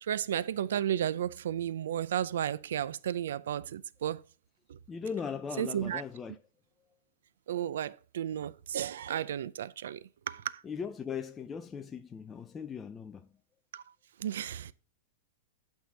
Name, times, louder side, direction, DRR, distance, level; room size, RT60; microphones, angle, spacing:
voice 1, 0.0-4.2 4.7-4.8 5.6-6.0 7.5-10.6 13.7-13.8 14.2-14.7, right 10 dB, 80° right, 0.4 m, -33 dB
voice 2, 4.9-6.4 10.6-13.3, left 6 dB, 15° left, 0.3 m, -39 dB
8.7 x 3.7 x 6.8 m
supercardioid pair, 165°, 0 cm